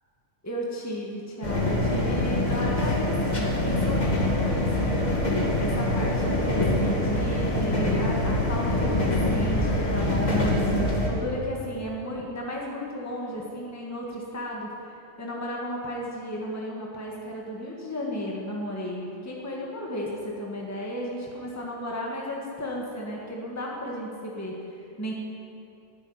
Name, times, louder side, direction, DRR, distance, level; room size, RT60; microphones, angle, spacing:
voice 1, 0.4-25.1, equal, 10° left, -3 dB, 1.9 m, -34 dB
sound 1, 1.4-11.1, left 1 dB, 30° left, 2.2 m, -24 dB
11.5 x 11.5 x 9.6 m, 2.7 s
omnidirectional pair, 1.5 m